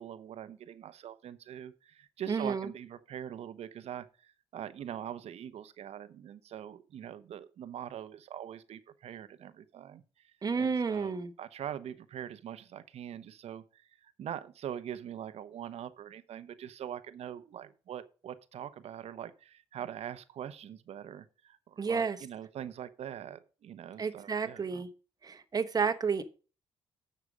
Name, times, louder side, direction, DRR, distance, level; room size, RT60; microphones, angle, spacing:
voice 1, 0.0-10.0 10.6-24.8, right 10 dB, 70° right, 0.9 m, -43 dB
voice 2, 2.3-2.7 10.4-11.3 21.8-22.2 24.0-24.9 25.2-26.3, right 5 dB, 35° right, 1.1 m, -31 dB
9.9 x 6.7 x 5.0 m
cardioid pair, 95°, 11 cm